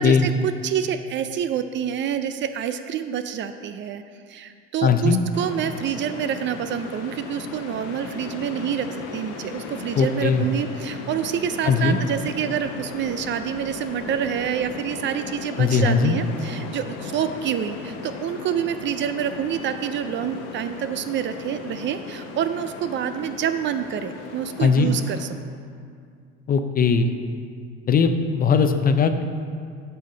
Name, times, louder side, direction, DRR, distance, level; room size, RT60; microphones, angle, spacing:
voice 1, 0.0-4.0 4.3-25.3, right 9 dB, 40° right, 10 dB, 0.4 m, -27 dB
voice 2, 4.8-5.2 10.0-10.5 11.6-12.0 15.6-16.2 24.6-24.9 26.5-27.1 27.9-29.2, left 5 dB, 30° left, 8 dB, 0.5 m, -19 dB
sound 1, 5.3-25.3, left 4 dB, 80° left, 0.9 m, -37 dB
8.7 x 5.7 x 3.8 m, 2.2 s
supercardioid pair, 90°, 29 cm